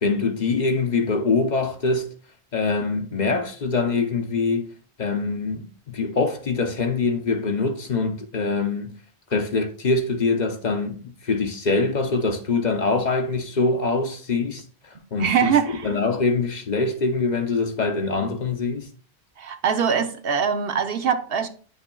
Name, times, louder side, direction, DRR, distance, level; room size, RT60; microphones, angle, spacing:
voice 1, 0.0-2.1 2.5-4.7 5.0-8.9 9.3-18.9, left 3 dB, 50° left, 0.7 m, -24 dB
voice 2, 15.2-15.9 19.4-21.5, right 7 dB, 65° right, 0.9 m, -22 dB
9.4 x 5.6 x 2.2 m
omnidirectional pair, 1.1 m